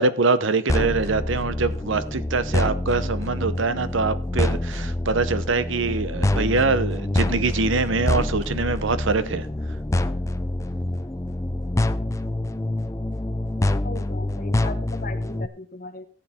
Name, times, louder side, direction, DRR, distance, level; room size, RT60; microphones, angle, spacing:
voice 1, 0.0-9.5, right 3 dB, 65° right, 0.8 m, -24 dB
sound 1, 0.7-15.5, left 1 dB, 15° left, 0.4 m, -26 dB
voice 2, 13.8-16.1, left 2 dB, 40° left, 1.3 m, -38 dB
14.0 x 8.5 x 4.3 m
head